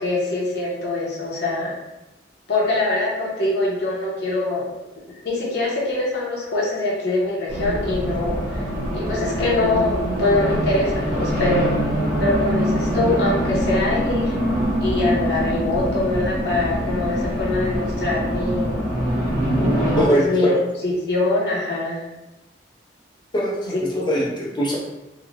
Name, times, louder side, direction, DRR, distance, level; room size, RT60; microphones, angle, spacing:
voice 1, 0.0-1.8 2.5-4.7 5.2-8.7 8.9-11.8 12.2-14.3 14.8-18.8 20.0-20.5 20.8-22.1 23.7-24.1, left 2 dB, 60° left, -5 dB, 0.9 m, -23 dB
Race car auto racing, 7.5-20.1, equal, ahead, 0.9 m, -24 dB
voice 2, 20.0-20.6 23.3-24.8, equal, 25° left, -4 dB, 0.6 m, -22 dB
3.0 x 2.3 x 2.5 m, 0.96 s
head